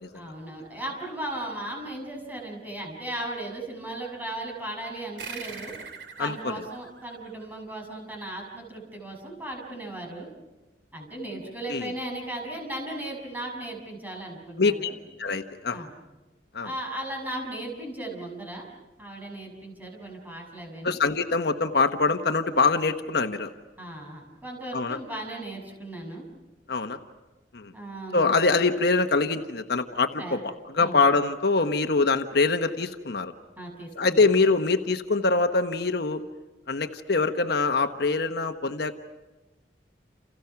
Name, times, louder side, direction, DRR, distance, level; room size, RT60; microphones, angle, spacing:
voice 1, 0.1-5.7 6.2-10.3 10.9-15.0 15.7-15.9 16.6-18.7 19.0-21.0 23.8-26.3 27.7-28.3 30.1-30.4 30.8-31.0 33.6-34.3, right 1 dB, 10° right, 0 dB, 6.8 m, -36 dB
sound 1, 5.2-8.2, right 5 dB, 85° right, 3.0 m, -43 dB
voice 2, 6.2-6.7 11.7-11.9 14.6-14.9 15.2-15.9 16.5-16.7 20.8-23.5 24.7-25.0 26.7-27.0 27.5-27.7 28.1-33.3 34.0-36.2 36.7-39.0, left 3 dB, 65° left, 7 dB, 1.2 m, -24 dB
29.5 x 29.0 x 5.9 m, 1.1 s
head